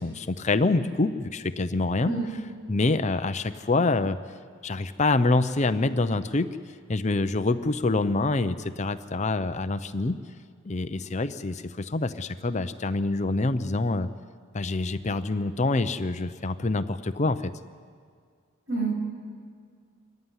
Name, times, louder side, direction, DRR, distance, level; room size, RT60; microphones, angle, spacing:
voice 1, 0.0-2.1 2.7-4.2 4.6-6.5 6.9-10.2 10.6-14.1 14.5-17.5, left 3 dB, 30° left, 11 dB, 0.6 m, -26 dB
voice 2, 2.0-2.3 18.7-18.9, right 3 dB, 65° right, -1 dB, 6.8 m, -27 dB
25.0 x 14.5 x 9.7 m, 2.1 s
head